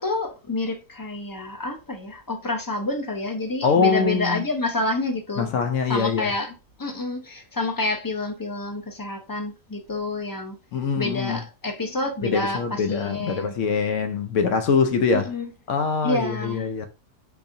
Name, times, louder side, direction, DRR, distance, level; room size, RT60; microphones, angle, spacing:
voice 1, 0.0-5.5 5.9-10.6 11.0-13.5 15.1-15.5 16.0-16.7, left 2 dB, 25° left, 0.4 m, -28 dB
voice 2, 3.6-4.4 5.4-6.3 10.7-11.4 12.2-15.3 15.7-16.9, left 5 dB, 75° left, 0.9 m, -23 dB
4.7 x 2.7 x 2.5 m
omnidirectional pair, 1.4 m